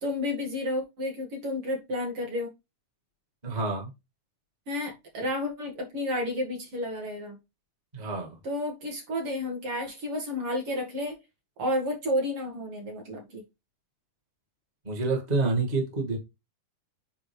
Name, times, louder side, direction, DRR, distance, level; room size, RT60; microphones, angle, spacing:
voice 1, 0.0-2.5 4.7-7.4 8.4-11.2 11.6-13.4, left 1 dB, 45° right, 2.2 m, -31 dB
voice 2, 3.4-3.9 7.9-8.4 14.8-16.2, right 3 dB, 25° right, 0.9 m, -28 dB
7.3 x 5.2 x 3.3 m
omnidirectional pair, 4.2 m